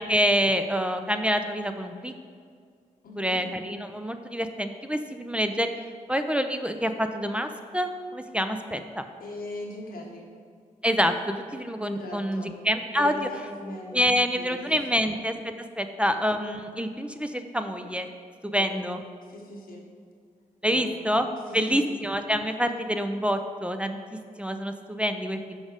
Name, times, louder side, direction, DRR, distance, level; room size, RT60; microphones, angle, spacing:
voice 1, 0.0-2.1 3.2-5.7 6.1-9.0 10.8-13.2 13.9-18.1 18.4-19.0 20.6-21.3 21.5-24.0 24.4-25.6, equal, 10° right, 7 dB, 0.4 m, -27 dB
voice 2, 3.0-3.4 9.2-10.3 12.0-12.5 13.0-15.1 18.6-18.9 19.3-19.8 20.6-21.0 21.5-22.0, left 1 dB, 90° left, -1 dB, 1.1 m, -40 dB
6.3 x 5.0 x 4.9 m, 2.1 s
cardioid pair, 70°, 15 cm